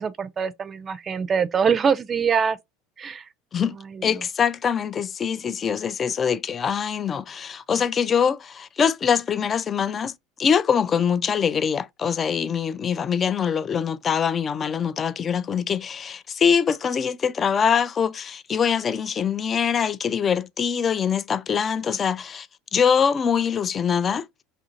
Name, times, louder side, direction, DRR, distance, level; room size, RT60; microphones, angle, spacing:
voice 1, 0.0-2.6 3.0-3.2 3.9-4.1, right 6 dB, 30° right, 0.5 m, -23 dB
voice 2, 4.0-10.1 10.4-22.5 22.7-24.3, left 7 dB, 30° left, 0.4 m, -23 dB
5.3 x 2.5 x 2.8 m
supercardioid pair, 105°, 0 cm